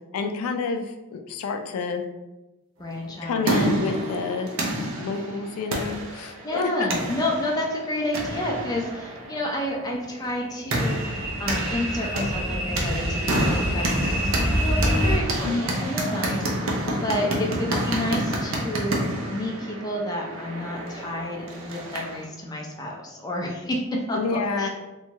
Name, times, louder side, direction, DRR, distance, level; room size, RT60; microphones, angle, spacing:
voice 1, 0.1-2.0 3.2-7.0 15.4-15.7 24.1-24.7, left 4 dB, 90° left, 6 dB, 0.3 m, -29 dB
voice 2, 2.8-3.8 6.4-19.0 19.3-24.7, left 1 dB, 20° left, -1 dB, 0.4 m, -30 dB
sound 1, 3.0-22.2, right 1 dB, 70° right, 0.5 m, -29 dB
sound 2, 10.1-15.2, equal, 15° right, 0.8 m, -27 dB
2.6 x 2.3 x 2.9 m, 1.0 s
head